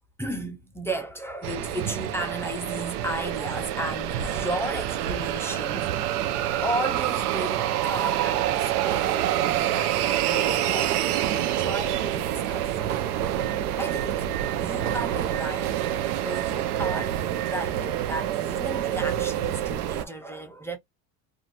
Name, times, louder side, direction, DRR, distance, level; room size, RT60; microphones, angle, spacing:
voice 1, 0.2-6.1 6.6-12.7 13.8-14.3 14.6-20.8, right 1 dB, 5° left, 0.4 m, -34 dB
sound 1, 1.4-20.0, right 11 dB, 80° right, 0.6 m, -27 dB
2.5 x 2.3 x 2.8 m
supercardioid pair, 95°, 44 cm